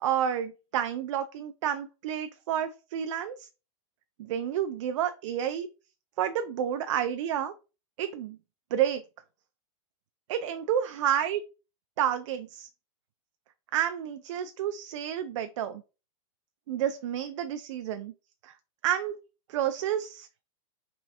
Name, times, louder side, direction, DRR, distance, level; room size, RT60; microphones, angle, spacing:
voice 1, 0.0-3.5 4.2-5.7 6.2-7.5 8.0-8.4 8.7-9.0 10.3-11.4 12.0-12.7 13.7-15.8 16.7-18.1 18.4-18.5 18.8-19.2 19.5-20.4, right 10 dB, 60° right, 10 dB, 0.4 m, -30 dB
3.5 x 3.1 x 2.8 m, 0.32 s
supercardioid pair, 160°, 18 cm